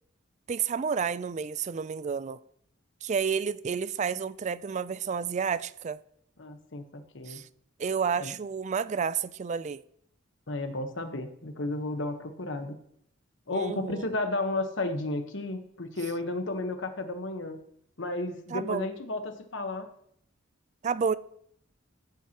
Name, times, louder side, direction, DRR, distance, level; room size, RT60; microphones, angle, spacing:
voice 1, 0.5-2.4 3.0-6.0 7.3-7.5 7.8-9.8 13.5-14.1 18.5-18.9 20.8-21.1, right 6 dB, 35° right, 0.3 m, -30 dB
voice 2, 6.4-7.4 8.1-8.3 10.5-12.8 13.5-17.6 18.0-19.9, left 2 dB, 65° left, 1.1 m, -33 dB
15.5 x 9.2 x 2.9 m
head